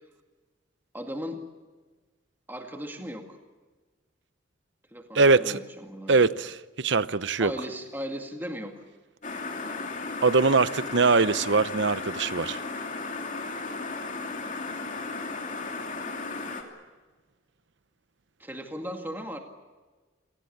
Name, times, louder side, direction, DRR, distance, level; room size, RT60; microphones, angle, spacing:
voice 1, 0.9-1.4 2.5-3.4 4.9-6.3 7.4-8.7 18.4-19.4, equal, 10° right, 2.0 m, -37 dB
voice 2, 5.1-5.6 6.1-7.5 10.2-12.6, right 4 dB, 65° right, 0.8 m, -22 dB
sound 1, 9.2-16.6, left 3 dB, 40° left, 3.0 m, -35 dB
28.0 x 19.0 x 8.6 m
head